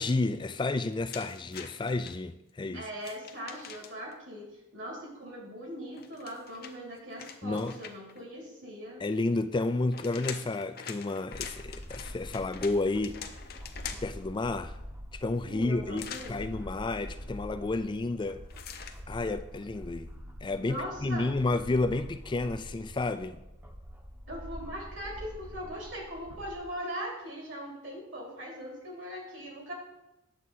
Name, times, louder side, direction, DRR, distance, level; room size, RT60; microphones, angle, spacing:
voice 1, 0.0-2.8 7.4-7.7 9.0-13.2 14.0-14.8 15.2-18.4 19.1-20.1 20.4-23.4, left 2 dB, 25° left, 11 dB, 0.3 m, -31 dB
sound 1, 1.1-2.1 3.0-4.1 5.9-8.2 9.6-14.2 15.9-16.4 18.5-19.0, left 7 dB, 50° left, 0.7 m, -44 dB
voice 2, 2.7-9.0 15.5-16.5 20.6-21.3 24.3-29.7, equal, 65° right, -2 dB, 3.1 m, -40 dB
sound 2, 11.3-26.6, equal, 10° right, 0.9 m, -45 dB
9.3 x 7.3 x 4.1 m, 0.92 s
head